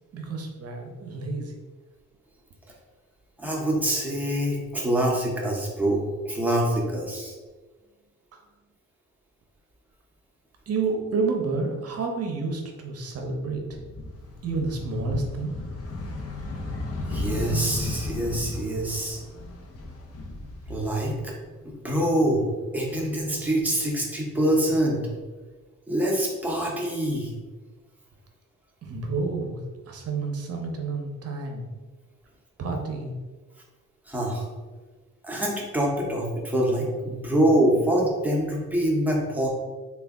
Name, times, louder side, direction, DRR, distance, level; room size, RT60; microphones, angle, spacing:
voice 1, 0.1-1.5 8.3-8.4 10.7-13.8 14.4-15.5 28.8-29.6 29.9-31.7 32.6-33.1, right 3 dB, 55° right, 3 dB, 0.6 m, -29 dB
voice 2, 3.4-7.4 17.0-19.2 20.7-21.3 21.6-22.5 22.7-25.1 25.9-27.3 34.1-34.5 35.2-39.5, right 1 dB, 5° right, -3 dB, 0.6 m, -25 dB
sound 1, 13.5-21.7 22.0-23.2, left 2 dB, 50° left, 0.6 m, -35 dB
3.2 x 2.2 x 3.5 m, 1.3 s
wide cardioid pair, 130°, 30 cm